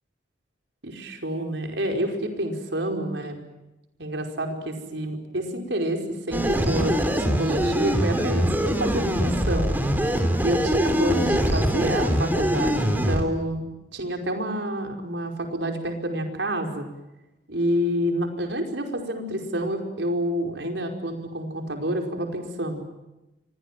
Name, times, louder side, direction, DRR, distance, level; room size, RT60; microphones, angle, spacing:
voice 1, 0.8-3.4 4.0-9.7 10.4-13.6 13.9-16.9 17.5-22.8, right 1 dB, 80° right, 4 dB, 5.1 m, -28 dB
sound 1, 6.3-13.2, equal, 10° right, 3.4 m, -23 dB
29.0 x 24.0 x 7.6 m, 0.98 s
head